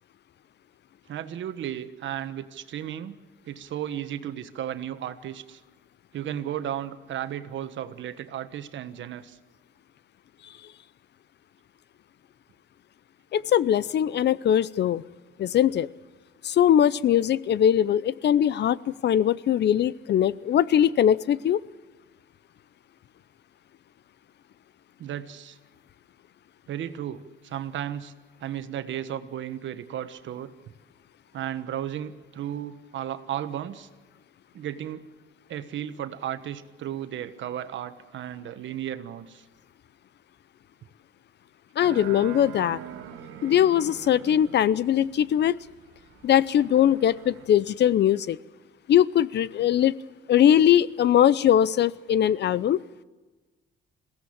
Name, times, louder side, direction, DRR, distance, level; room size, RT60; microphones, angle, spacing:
voice 1, 1.1-3.2 3.4-5.6 6.1-9.4 25.0-25.6 26.7-28.1 28.4-30.5 31.3-33.9 34.5-35.0 35.5-39.5, right 10 dB, 70° right, 11 dB, 1.3 m, -34 dB
voice 2, 13.3-15.0 15.4-15.9 16.4-18.8 19.0-21.6 41.8-42.8 43.4-45.6 46.2-48.4 48.9-49.9 50.3-52.8, left 10 dB, 60° left, 20 dB, 0.7 m, -21 dB
sound 1, 41.8-47.5, right 9 dB, 90° right, 1.3 m, -43 dB
22.0 x 16.5 x 8.7 m, 1.3 s
cardioid pair, 90°, 20 cm